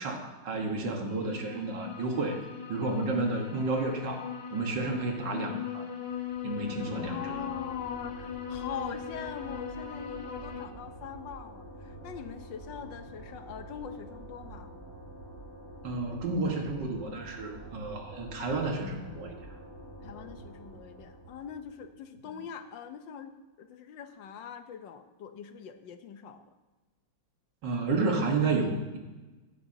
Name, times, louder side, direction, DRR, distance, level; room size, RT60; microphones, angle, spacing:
voice 1, 0.0-2.4 2.7-5.9 6.4-7.4 15.8-19.4 27.6-29.0, right 3 dB, 70° right, 2 dB, 2.1 m, -31 dB
sound 1, 1.1-10.7, left 7 dB, 45° left, 0.7 m, -40 dB
sound 2, 6.0-21.9, right 1 dB, 5° right, 3.9 m, -47 dB
voice 2, 7.0-14.7 20.0-26.4, left 7 dB, 80° left, 9 dB, 1.5 m, -42 dB
15.5 x 11.0 x 2.8 m, 1.2 s
omnidirectional pair, 2.0 m